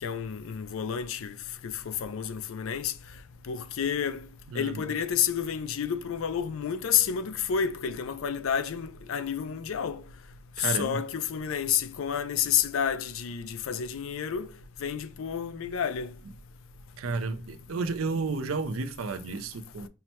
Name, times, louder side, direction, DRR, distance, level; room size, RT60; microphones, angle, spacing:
voice 1, 0.0-1.4 1.6-2.9 3.5-4.3 4.5-10.0 10.6-14.5 14.8-16.1, left 8 dB, 80° left, 0.4 m, -30 dB
voice 2, 4.5-4.8 10.6-11.0 17.0-19.9, right 4 dB, 90° right, 0.5 m, -32 dB
5.6 x 2.1 x 2.8 m
head